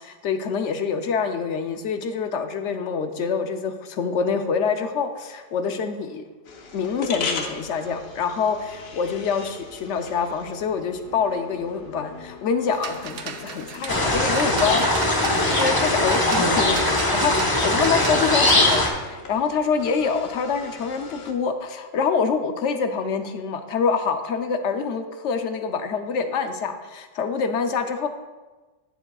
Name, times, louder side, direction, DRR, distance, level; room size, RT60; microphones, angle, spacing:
voice 1, 0.0-6.2 6.7-14.9 15.5-28.1, left 5 dB, 65° left, 7 dB, 0.9 m, -26 dB
sound 1, 6.4-21.3, left 4 dB, 85° left, 1.2 m, -39 dB
sound 2, 12.7-18.9, right 6 dB, 65° right, 0.9 m, -36 dB
sound 3, 13.9-18.9, left 1 dB, 20° left, 0.7 m, -20 dB
10.0 x 7.0 x 2.3 m, 1.2 s
omnidirectional pair, 1.4 m